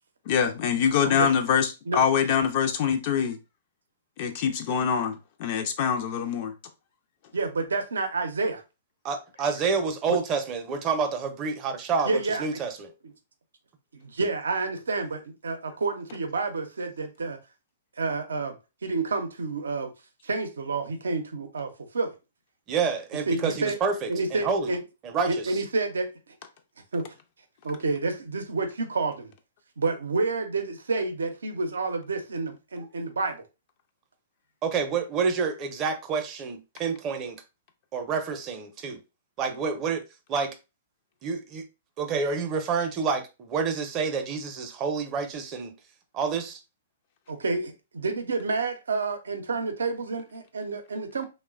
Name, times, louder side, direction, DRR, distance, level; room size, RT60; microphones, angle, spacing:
voice 1, 0.3-3.4 4.2-6.5, left 7 dB, 50° left, 0.4 m, -24 dB
voice 2, 7.3-8.6 12.0-12.4 13.9-17.4 18.0-18.6 18.8-19.9 20.2-22.1 23.3-23.8 24.1-24.8 25.3-26.1 26.9-27.1 27.6-29.3 29.8-33.4 47.3-51.3, right 3 dB, 80° right, 0.5 m, -29 dB
voice 3, 9.0-12.9 22.7-24.7 25.0-25.6 32.8-32.9 34.6-37.4 37.9-39.0 39.4-40.0 40.3-40.5 41.2-41.7 42.0-45.7 46.1-46.6, right 5 dB, 30° right, 0.5 m, -28 dB
3.0 x 2.1 x 2.3 m
hypercardioid pair, 125°, 0 cm